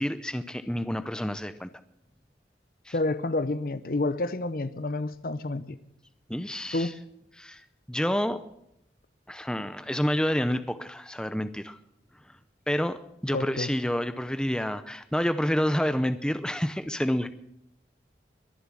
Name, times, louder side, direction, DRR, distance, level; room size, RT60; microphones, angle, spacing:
voice 1, 0.0-1.7 2.9-3.0 6.3-6.9 7.4-8.4 9.3-11.8 12.7-17.3, equal, 5° left, 0.5 m, -29 dB
voice 2, 2.9-5.8 6.7-7.0 13.3-13.7, left 2 dB, 50° left, 0.7 m, -29 dB
22.0 x 7.4 x 7.4 m
head